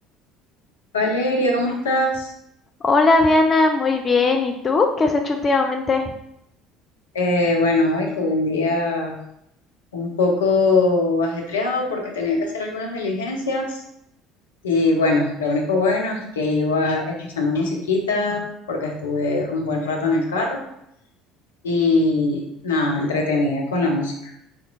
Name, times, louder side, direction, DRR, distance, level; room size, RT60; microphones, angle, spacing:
voice 1, 0.9-2.3 7.1-9.2 9.9-13.8 14.6-20.6 21.6-24.3, left 2 dB, 75° left, 1 dB, 0.7 m, -22 dB
voice 2, 2.8-6.1, left 3 dB, 30° left, 4 dB, 0.4 m, -18 dB
4.1 x 3.0 x 3.9 m, 0.78 s
figure-of-eight pair, 60°, 0 cm